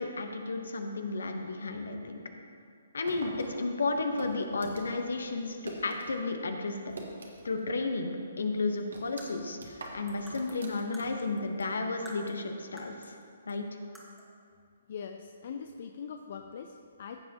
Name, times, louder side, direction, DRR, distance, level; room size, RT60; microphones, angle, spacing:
voice 1, 0.0-2.2 2.9-7.0 7.4-13.2 13.5-13.6, left 3 dB, 75° left, 5 dB, 1.1 m, -33 dB
sound 1, 3.0-6.1 6.4-7.7 8.0-8.1 8.5-11.3, right 3 dB, 75° right, 1.6 m, -46 dB
sound 2, 9.2-11.7 12.0-13.2 13.5-13.6 13.9-14.4, equal, ahead, 1.5 m, -51 dB
voice 2, 14.9-17.2, left 6 dB, 50° left, 5 dB, 0.5 m, -42 dB
15.0 x 7.3 x 2.9 m, 2.4 s
figure-of-eight pair, 135°, 0 cm